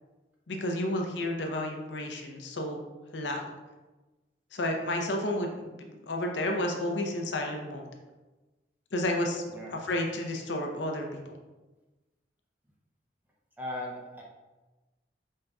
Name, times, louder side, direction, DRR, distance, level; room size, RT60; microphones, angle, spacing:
voice 1, 0.5-2.8 3.1-3.5 4.5-7.9 8.9-9.4 9.7-11.3, left 1 dB, 75° left, 2 dB, 0.6 m, -31 dB
voice 2, 13.6-14.2, left 1 dB, 10° right, -3 dB, 0.6 m, -37 dB
5.4 x 3.7 x 2.3 m, 1.1 s
head